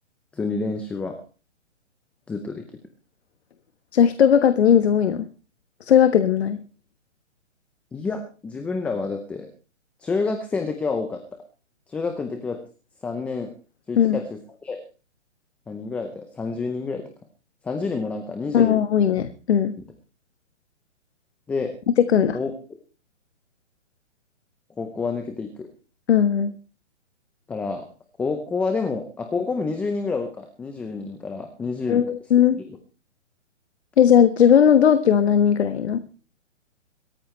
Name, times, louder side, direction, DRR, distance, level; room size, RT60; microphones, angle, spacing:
voice 1, 0.3-1.1 2.3-2.6 7.9-9.5 10.0-11.2 11.9-12.6 13.0-13.5 13.9-14.2 14.6-14.8 15.7-17.1 17.6-18.8 21.5-21.7 22.3-22.5 24.8-25.7 27.5-27.9 28.2-32.0 32.7-32.8, left 4 dB, 5° left, 6 dB, 0.6 m, -28 dB
voice 2, 3.9-5.3 5.8-6.6 14.0-14.2 18.5-19.7 21.9-22.4 26.1-26.5 31.9-32.6 34.0-36.0, left 8 dB, 60° left, 10 dB, 1.4 m, -17 dB
22.0 x 14.0 x 3.2 m, 0.36 s
hypercardioid pair, 145°, 37 cm